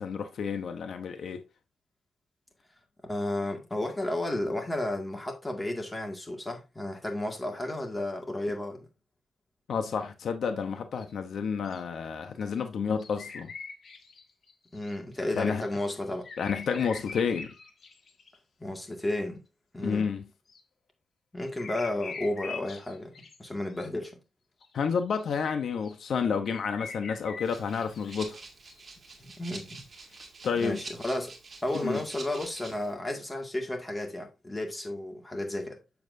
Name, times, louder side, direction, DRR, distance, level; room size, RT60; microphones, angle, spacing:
voice 1, 0.0-1.4 9.7-13.5 15.3-15.6 16.4-17.5 19.8-20.3 24.7-28.4 30.4-30.8 31.8-32.0, left 6 dB, 70° left, 0.8 m, -30 dB
voice 2, 3.1-8.9 14.7-16.3 18.6-19.4 19.7-20.0 21.3-23.1 23.4-24.2 29.2-29.9 30.6-31.3 31.6-35.8, left 1 dB, 15° left, 2.0 m, -32 dB
sound 1, 11.0-11.1 11.6-11.8 12.4-12.5 13.0-15.0 15.3-18.4 20.5-20.6 21.6-23.4 23.7-23.9 24.6-24.7 25.0-25.3 25.7-25.9 26.5-28.2 28.7-28.8 29.1-29.2, left 5 dB, 50° left, 1.5 m, -44 dB
Rattle (instrument), 27.4-32.9, right 3 dB, 40° right, 2.2 m, -47 dB
7.4 x 7.1 x 2.6 m
cardioid pair, 110°, 0 cm